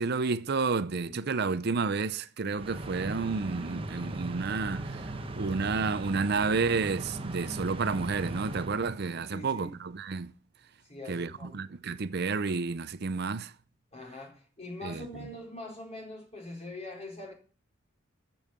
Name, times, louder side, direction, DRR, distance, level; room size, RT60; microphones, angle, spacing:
voice 1, 0.0-10.3 11.1-13.5 14.8-15.1, right 4 dB, 55° right, 0.6 m, -31 dB
sound 1, 2.6-9.4, right 2 dB, 30° right, 1.1 m, -38 dB
voice 2, 9.3-9.7 10.9-11.6 13.9-17.3, left 2 dB, 30° left, 4.4 m, -43 dB
14.0 x 5.5 x 8.3 m
head